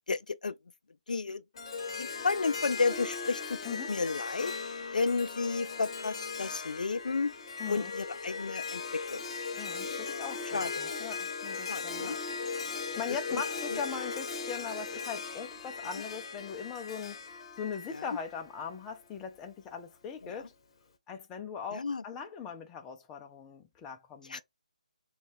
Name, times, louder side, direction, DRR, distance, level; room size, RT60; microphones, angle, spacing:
voice 1, 0.1-0.5 1.1-1.4 2.0-3.6 3.9-4.5 4.9-7.3 7.7-9.2 10.5-10.7 11.7-12.2 13.3-13.4 13.7-13.8 17.9-18.0 21.7-22.0 24.3-24.4, left 4 dB, 75° left, 0.4 m, -32 dB
Harp, 1.6-18.8, left 5 dB, 40° left, 0.8 m, -38 dB
voice 2, 3.6-4.0 7.6-7.9 9.6-12.2 12.6-17.2 17.6-20.5 21.1-24.4, left 6 dB, 10° left, 0.5 m, -40 dB
3.8 x 2.3 x 4.6 m
hypercardioid pair, 160°, 4 cm